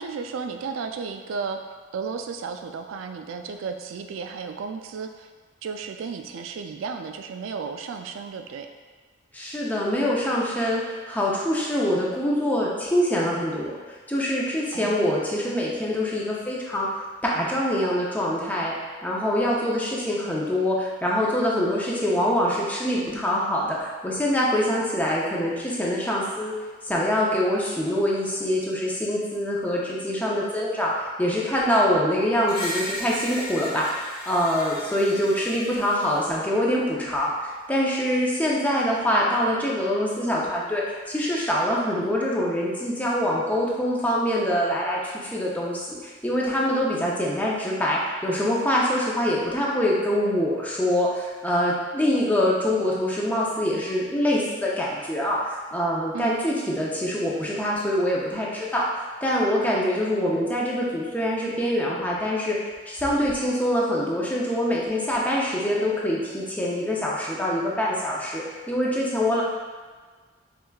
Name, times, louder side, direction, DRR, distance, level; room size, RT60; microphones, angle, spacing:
voice 1, 0.0-1.6 1.9-5.3 5.6-8.7 14.7-15.2 56.1-56.4, right 5 dB, 85° right, 6 dB, 0.3 m, -33 dB
voice 2, 9.3-13.7 14.1-16.9 17.2-18.7 19.0-26.5 26.8-69.4, equal, 10° left, -4 dB, 0.5 m, -24 dB
Screech, 32.5-36.5, left 1 dB, 50° left, 0.6 m, -36 dB
4.6 x 3.3 x 2.3 m, 1.4 s
head